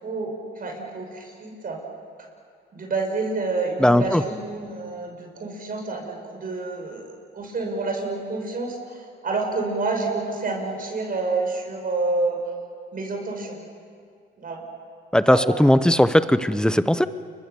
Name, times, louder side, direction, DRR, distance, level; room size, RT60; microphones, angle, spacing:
voice 1, 0.0-1.8 2.7-7.0 7.3-12.4 12.9-13.6 14.4-14.6 15.3-15.6, right 3 dB, 45° right, 2 dB, 6.2 m, -28 dB
voice 2, 3.8-4.2 15.1-17.1, equal, 5° left, 13 dB, 0.8 m, -18 dB
30.0 x 23.0 x 7.0 m, 2.2 s
cardioid pair, 90°, 20 cm